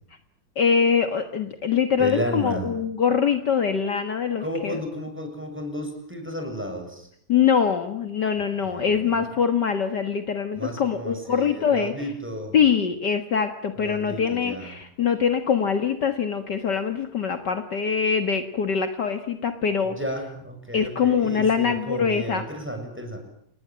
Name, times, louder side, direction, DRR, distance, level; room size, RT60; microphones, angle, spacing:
voice 1, 0.6-4.8 7.3-11.9 12.5-20.0 20.7-22.5, left 6 dB, 55° left, 8 dB, 2.1 m, -23 dB
voice 2, 2.0-2.7 4.4-7.1 8.6-9.2 10.5-12.6 13.8-14.7 19.9-23.2, equal, 5° right, 5 dB, 7.2 m, -33 dB
29.0 x 20.0 x 9.0 m, 0.69 s
omnidirectional pair, 2.3 m